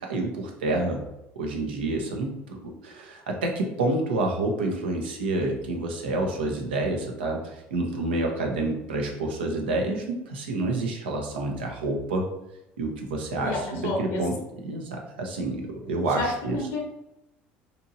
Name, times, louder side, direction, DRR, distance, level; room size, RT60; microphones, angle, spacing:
voice 1, 0.1-1.0 1.4-2.6 2.8-12.3 12.8-14.3 14.6-16.6, right 2 dB, 85° right, 1 dB, 0.6 m, -28 dB
voice 2, 13.4-14.2 16.1-16.8, left 2 dB, 70° left, 0 dB, 0.7 m, -30 dB
2.9 x 2.6 x 2.5 m, 0.88 s
hypercardioid pair, 75°, 5 cm